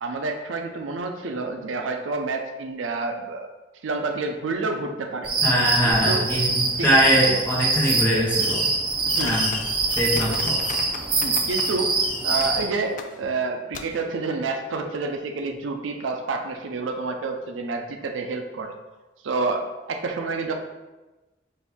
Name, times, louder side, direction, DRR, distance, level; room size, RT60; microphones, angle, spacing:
voice 1, 0.0-3.5 3.8-5.3 5.8-6.3 6.8-6.9 9.1-9.4 11.2-12.0 12.2-18.8 19.2-20.6, right 3 dB, 85° right, 4 dB, 0.5 m, -29 dB
sound 1, 5.2-12.7, right 3 dB, 25° right, 0.5 m, -24 dB
voice 2, 5.4-8.7 9.2-9.6 10.0-10.6, equal, 10° left, -6 dB, 0.9 m, -22 dB
Fireworks, 8.4-8.8 9.1-11.7 12.0-12.4 13.0-13.1 13.7-13.8, left 6 dB, 40° left, 0.3 m, -34 dB
4.4 x 2.6 x 3.5 m, 1.1 s
head